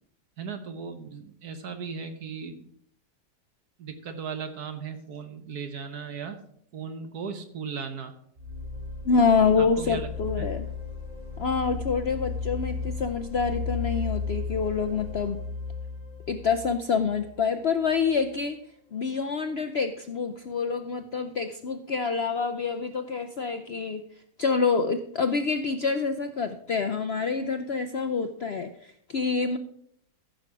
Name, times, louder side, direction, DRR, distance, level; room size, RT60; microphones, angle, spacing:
voice 1, 0.4-2.6 3.8-6.4 6.7-8.1 9.6-10.1 10.4-10.5, right 6 dB, 65° right, 8 dB, 1.4 m, -37 dB
sound 1, 8.4-18.2, left 4 dB, 30° right, 3.0 m, -35 dB
voice 2, 9.0-10.7 11.4-15.4 16.3-18.6 18.9-24.0 24.4-29.6, left 5 dB, 75° left, 7 dB, 0.5 m, -27 dB
14.5 x 6.5 x 4.8 m, 0.68 s
omnidirectional pair, 1.9 m